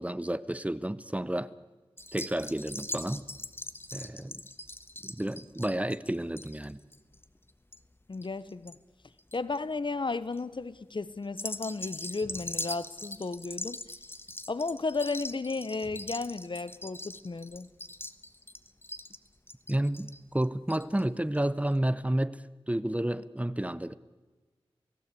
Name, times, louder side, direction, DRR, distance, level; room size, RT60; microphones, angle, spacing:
voice 1, 0.0-1.5 2.1-3.2 3.9-4.4 5.0-6.8 19.7-23.9, right 1 dB, 15° right, 0.8 m, -31 dB
sound 1, 2.0-8.8 9.0-9.6 10.1-10.4 11.2-21.0 21.3-21.4 21.7-21.8, left 1 dB, 25° left, 1.2 m, -41 dB
voice 2, 8.1-8.7 9.3-13.8 14.5-17.7, left 3 dB, 55° left, 0.9 m, -34 dB
29.0 x 18.0 x 8.4 m
wide cardioid pair, 75°, 10 cm